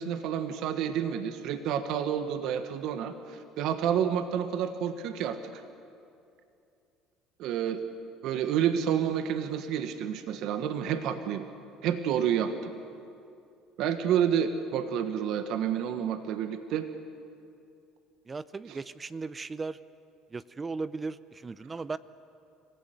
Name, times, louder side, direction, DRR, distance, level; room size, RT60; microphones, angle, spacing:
voice 1, 0.0-5.6 7.4-7.8 8.2-11.4 11.8-12.7 13.8-16.9 18.7-18.8, right 9 dB, 65° right, 9 dB, 1.3 m, -29 dB
voice 2, 18.3-19.8 20.3-22.0, right 4 dB, 25° right, 16 dB, 0.6 m, -37 dB
25.5 x 16.0 x 9.4 m, 2.6 s
supercardioid pair, 85°, 0 cm